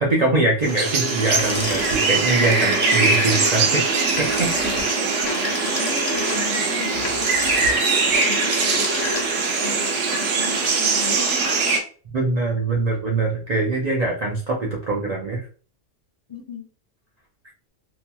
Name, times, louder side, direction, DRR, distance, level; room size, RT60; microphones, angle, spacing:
voice 1, 0.0-3.9 4.2-4.5 12.1-15.4, right 2 dB, 55° right, -2 dB, 0.4 m, -23 dB
sound 1, 0.6-11.8, right 4 dB, 70° right, 1.0 m, -21 dB
sound 2, 1.4-9.5, left 4 dB, 80° left, 1.1 m, -31 dB
voice 2, 4.6-7.7 8.2-9.2 9.5-11.4 16.3-16.7, left 5 dB, 35° left, -4 dB, 0.5 m, -36 dB
2.9 x 2.7 x 2.2 m, 0.40 s
omnidirectional pair, 1.3 m